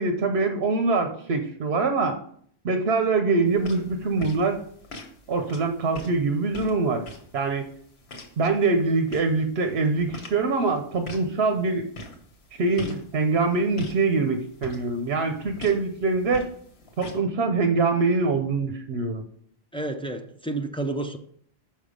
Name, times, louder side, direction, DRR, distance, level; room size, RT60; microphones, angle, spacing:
voice 1, 0.0-2.2 2.6-4.6 5.3-7.0 7.3-7.7 8.4-11.9 12.6-16.5 17.0-19.2, right 3 dB, 75° right, 6 dB, 1.0 m, -24 dB
sound 1, 3.5-17.2, left 1 dB, 85° left, 1.5 m, -44 dB
voice 2, 19.7-21.2, right 2 dB, 10° left, 4 dB, 0.3 m, -30 dB
5.9 x 5.5 x 5.0 m, 0.62 s
omnidirectional pair, 1.1 m